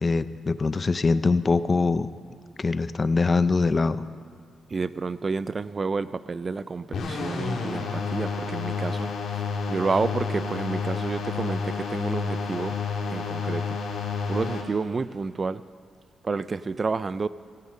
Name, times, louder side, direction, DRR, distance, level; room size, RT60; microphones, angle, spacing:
voice 1, 0.0-2.1 2.6-4.0, left 4 dB, 30° left, 14 dB, 0.5 m, -23 dB
voice 2, 4.7-9.1 9.7-12.8 13.1-13.8 14.3-15.6 16.2-17.3, right 4 dB, 30° right, 16 dB, 0.3 m, -29 dB
sound 1, 6.9-14.6, left 5 dB, 70° left, 2.3 m, -30 dB
17.0 x 11.0 x 6.3 m, 2.1 s
cardioid pair, 125°, 0 cm